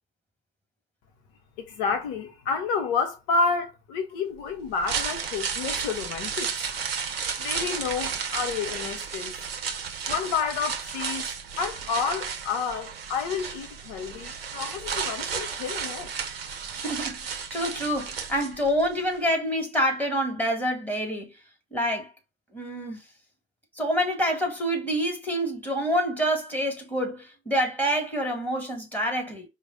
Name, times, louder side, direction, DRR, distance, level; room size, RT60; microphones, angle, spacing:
voice 1, 1.6-6.5 7.4-9.5 10.1-11.3 11.6-16.1, left 5 dB, 65° left, 0.7 m, -30 dB
sound 1, 4.6-18.9 19.2-19.3, right 6 dB, 85° right, 0.6 m, -33 dB
voice 2, 16.7-21.3 21.7-22.1 22.5-23.0 23.8-29.5, equal, 5° left, 2.0 m, -27 dB
4.7 x 2.0 x 3.9 m
figure-of-eight pair, 50°, 29 cm